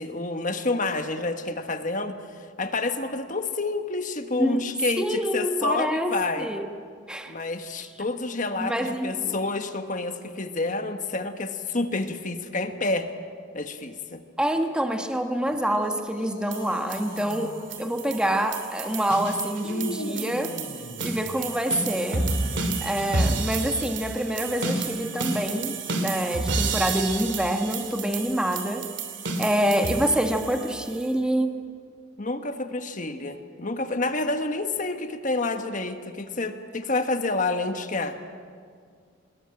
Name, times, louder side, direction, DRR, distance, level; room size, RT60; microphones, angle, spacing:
voice 1, 0.0-2.2 2.6-6.5 7.3-13.1 13.5-14.2 32.2-38.2, left 2 dB, 40° left, 7 dB, 1.5 m, -28 dB
voice 2, 5.0-6.6 7.1-7.3 8.5-9.3 14.4-20.6 21.0-22.3 22.8-28.9 29.4-31.6, equal, 5° right, 4 dB, 1.4 m, -26 dB
sound 1, 15.5-17.7 19.6-21.4 23.0-23.5, left 1 dB, 85° left, 5.0 m, -39 dB
sound 2, 16.5-31.1, right 3 dB, 65° right, 2.8 m, -31 dB
25.5 x 21.0 x 8.9 m, 2.1 s
head